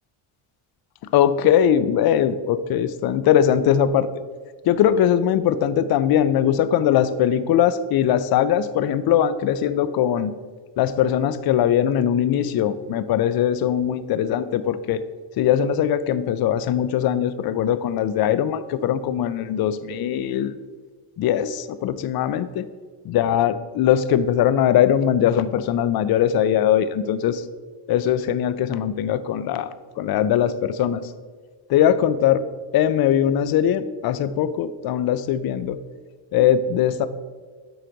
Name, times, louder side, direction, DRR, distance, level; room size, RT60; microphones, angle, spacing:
voice 1, 1.0-4.1 4.6-10.3 10.8-15.0 15.4-20.5 21.2-22.7 23.1-27.4 27.9-31.1 31.7-32.5 32.7-35.8 36.3-37.1, left 10 dB, 50° left, 14 dB, 0.5 m, -21 dB
7.7 x 5.0 x 3.9 m, 1.5 s
cardioid pair, 115°, 50 cm